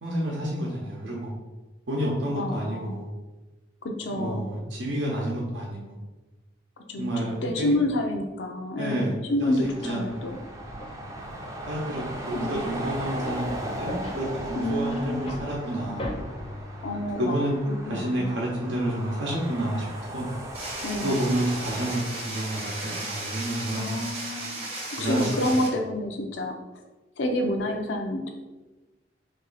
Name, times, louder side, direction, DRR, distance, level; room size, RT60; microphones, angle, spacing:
voice 1, 0.0-1.3 1.9-3.1 4.1-6.0 7.0-7.7 8.8-9.1 9.4-9.5 9.8-10.2 11.7-16.0 17.2-17.6 17.9-19.8 20.1-20.3 21.0-23.9 25.0-25.6, right 1 dB, 80° right, -4 dB, 0.8 m, -29 dB
voice 2, 2.3-3.0 3.8-4.5 6.8-7.1 7.4-10.4 12.3-12.7 14.6-15.4 16.8-18.3 20.8-21.2 23.8-24.7 24.9-26.8 27.2-28.3, left 1 dB, 80° left, 4 dB, 0.5 m, -29 dB
sound 1, 9.6-22.0, right 1 dB, 20° right, 0.4 m, -37 dB
sound 2, 10.1-17.1, left 1 dB, 30° left, 0.5 m, -40 dB
sound 3, 20.5-25.7, right 2 dB, 35° right, 0.8 m, -35 dB
3.0 x 2.6 x 4.0 m, 1.1 s
head